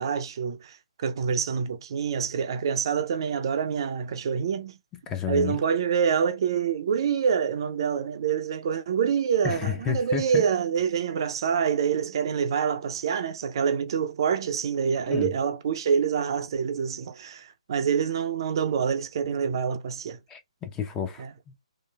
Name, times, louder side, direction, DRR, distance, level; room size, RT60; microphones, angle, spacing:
voice 1, 0.0-4.8 5.3-20.2 21.2-21.3, right 7 dB, 45° right, 0.5 m, -26 dB
voice 2, 5.1-5.6 9.4-10.4 15.1-15.3 20.3-21.6, left 8 dB, 15° left, 0.5 m, -31 dB
3.1 x 2.7 x 2.3 m
figure-of-eight pair, 135°, 4 cm